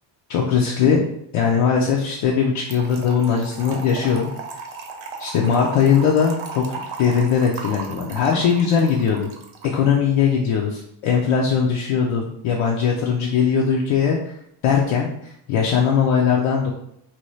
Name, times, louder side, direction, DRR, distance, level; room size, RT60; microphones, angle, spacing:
voice 1, 0.3-1.0 1.3-4.3 5.2-9.3 9.6-14.3 14.6-15.1 15.5-16.7, left 6 dB, 80° left, -1 dB, 0.6 m, -20 dB
Trickle dribble / Fill (with liquid), 2.7-9.8, right 4 dB, 70° right, 0.7 m, -36 dB
2.8 x 2.3 x 3.1 m, 0.73 s
cardioid pair, 80°, 48 cm